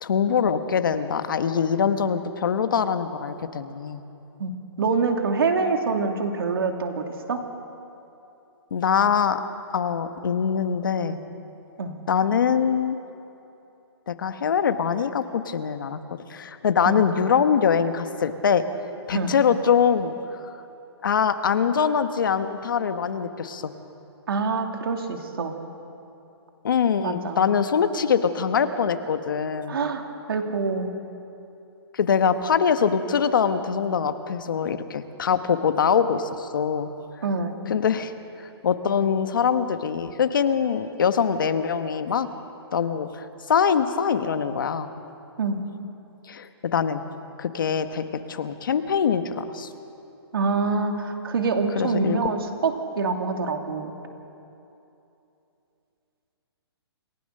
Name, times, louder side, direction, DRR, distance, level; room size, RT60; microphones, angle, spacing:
voice 1, 0.0-4.0 8.7-9.4 9.7-11.2 12.1-13.0 14.1-18.6 19.1-20.1 21.0-23.7 26.6-29.8 31.9-36.9 37.7-38.1 38.6-42.3 42.7-44.9 46.3-47.0 47.4-49.7 51.7-52.2, left 7 dB, 50° left, 10 dB, 1.2 m, -23 dB
voice 2, 4.8-7.4 11.8-11.9 16.8-17.0 19.1-19.3 24.3-25.6 27.0-27.4 29.7-30.0 30.3-30.9 37.2-37.6 45.4-45.6 50.3-53.9, right 4 dB, 60° right, 4 dB, 2.6 m, -25 dB
28.0 x 16.5 x 6.7 m, 2.9 s
hypercardioid pair, 175°, 14 cm